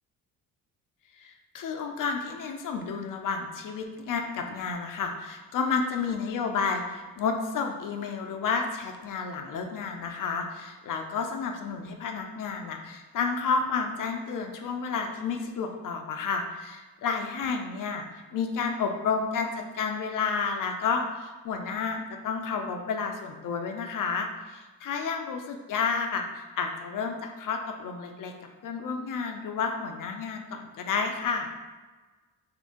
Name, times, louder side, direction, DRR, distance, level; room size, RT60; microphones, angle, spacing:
voice 1, 1.2-19.5 19.7-28.3 28.6-31.5, left 5 dB, 55° left, 4 dB, 0.6 m, -31 dB
3.0 x 2.6 x 3.6 m, 1.3 s
supercardioid pair, 60°, 38 cm